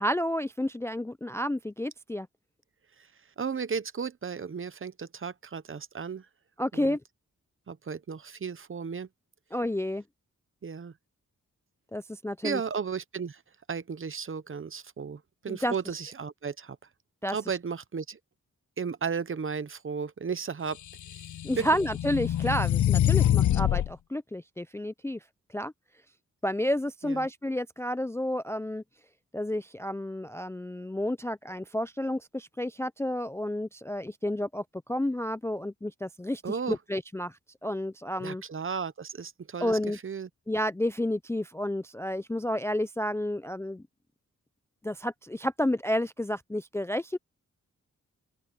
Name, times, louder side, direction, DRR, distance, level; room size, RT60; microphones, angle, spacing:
voice 1, 0.0-2.3 6.6-7.0 9.5-10.0 11.9-12.6 15.5-15.7 17.2-17.4 21.4-25.2 25.5-25.7 26.4-28.8 29.3-34.6 34.9-36.4 36.7-38.4 39.6-40.0 40.5-43.8 44.8-47.2, left 1 dB, 10° left, 0.4 m, -30 dB
voice 2, 3.4-6.3 6.7-7.0 7.7-9.1 10.6-10.9 12.4-13.4 13.7-16.8 17.3-18.2 18.8-20.8 21.6-21.7 27.0-27.3 36.4-36.8 38.2-40.3, right 6 dB, 45° right, 0.8 m, -34 dB
sound 1, 20.9-23.9, left 11 dB, 75° left, 0.5 m, -25 dB
open air
wide cardioid pair, 110°, 30 cm